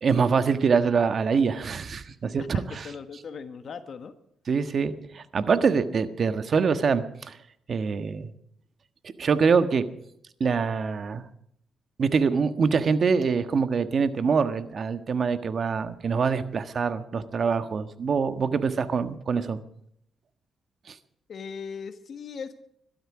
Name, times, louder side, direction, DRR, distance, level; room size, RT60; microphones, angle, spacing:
voice 1, 0.0-2.9 4.5-7.4 7.7-8.3 9.2-9.9 10.4-11.2 12.0-19.6 20.9-21.0, right 5 dB, 55° right, 11 dB, 1.5 m, -24 dB
voice 2, 2.4-4.1 21.3-22.6, left 6 dB, 60° left, 10 dB, 1.4 m, -39 dB
22.5 x 12.5 x 5.0 m, 0.72 s
cardioid pair, 75°, 0 cm